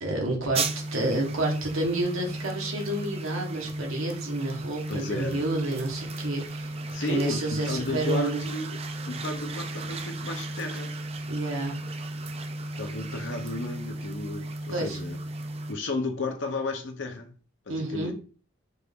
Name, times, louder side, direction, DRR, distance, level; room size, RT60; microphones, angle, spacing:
voice 1, 0.0-0.6 0.9-6.7 7.1-8.4 11.3-11.8 14.7-15.0 17.7-18.1, right 2 dB, 70° right, 1.3 m, -29 dB
sound 1, 0.5-15.7, right 2 dB, 30° right, 0.4 m, -35 dB
voice 2, 4.9-5.4 6.9-7.4 7.6-8.8 9.1-10.9 12.8-15.2 15.7-17.3 17.7-18.1, left 3 dB, 60° left, 0.8 m, -33 dB
4.4 x 2.6 x 3.5 m
head